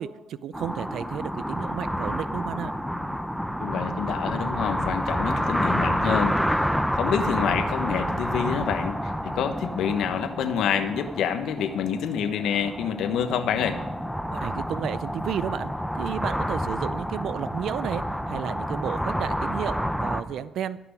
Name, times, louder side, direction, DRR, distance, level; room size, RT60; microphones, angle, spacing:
voice 1, 0.0-2.7 14.3-20.8, right 10 dB, 75° right, 16 dB, 0.5 m, -33 dB
sound 1, 0.5-20.2, equal, ahead, 0.8 m, -29 dB
voice 2, 3.6-6.7 6.9-13.8, left 8 dB, 80° left, 9 dB, 1.2 m, -27 dB
14.5 x 6.1 x 9.8 m, 1.1 s
cardioid pair, 90°, 0 cm